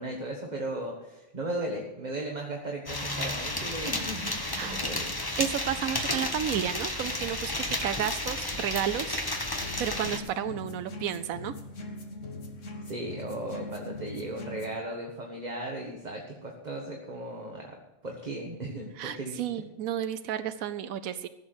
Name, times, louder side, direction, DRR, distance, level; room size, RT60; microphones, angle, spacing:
voice 1, 0.0-5.1 12.8-17.7 18.0-19.4, right 1 dB, 30° right, 0 dB, 1.7 m, -36 dB
sound 1, 2.9-10.2, left 1 dB, 15° left, 1.2 m, -32 dB
voice 2, 5.4-9.2 9.8-11.5 19.0-21.3, right 10 dB, 90° right, 10 dB, 1.1 m, -32 dB
sound 2, 9.6-14.8, left 2 dB, 65° left, 1.8 m, -41 dB
15.5 x 7.3 x 7.8 m, 0.96 s
omnidirectional pair, 1.4 m